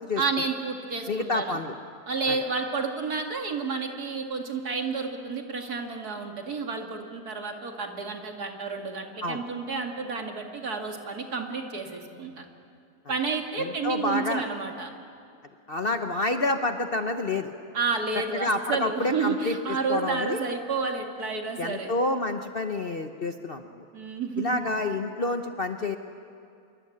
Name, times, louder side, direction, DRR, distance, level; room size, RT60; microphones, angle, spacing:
voice 1, 0.2-1.6 2.1-12.4 13.1-14.9 17.7-21.9 23.9-24.7, right 4 dB, 70° right, 3 dB, 2.7 m, -30 dB
voice 2, 1.1-1.7 2.3-2.4 9.2-9.4 13.6-14.4 15.7-17.5 18.3-19.6 19.9-20.4 21.6-23.7 24.4-26.0, left 2 dB, 40° left, 6 dB, 1.0 m, -28 dB
26.0 x 23.5 x 8.6 m, 2.4 s
omnidirectional pair, 1.7 m